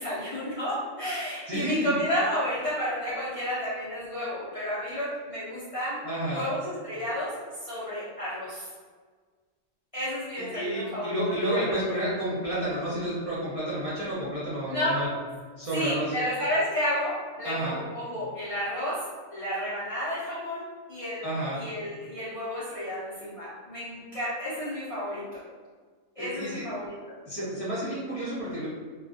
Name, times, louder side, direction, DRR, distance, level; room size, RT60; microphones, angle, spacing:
voice 1, 0.0-6.0 6.3-7.3 7.6-8.7 9.9-11.6 14.7-15.0 15.7-18.9 19.3-21.2 21.5-25.4 26.2-27.1, equal, 55° left, -10 dB, 0.4 m, -31 dB
voice 2, 1.5-1.9 6.0-6.5 10.5-15.1 15.6-16.1 17.4-17.8 21.2-21.6 26.2-26.6 27.3-28.7, right 1 dB, 40° right, -11 dB, 0.5 m, -30 dB
2.3 x 2.2 x 2.5 m, 1.5 s
omnidirectional pair, 1.4 m